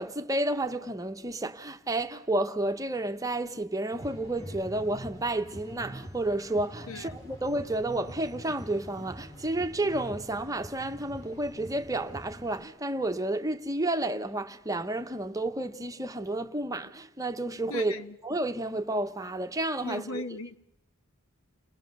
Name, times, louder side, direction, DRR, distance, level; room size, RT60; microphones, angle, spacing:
voice 1, 0.0-17.9 18.2-20.2, right 2 dB, 15° right, 0.9 m, -31 dB
sound 1, 3.9-12.6, right 1 dB, 15° left, 2.7 m, -45 dB
voice 2, 6.9-7.2 17.7-18.1 19.8-20.6, left 2 dB, 90° left, 1.2 m, -37 dB
30.0 x 20.0 x 6.6 m
head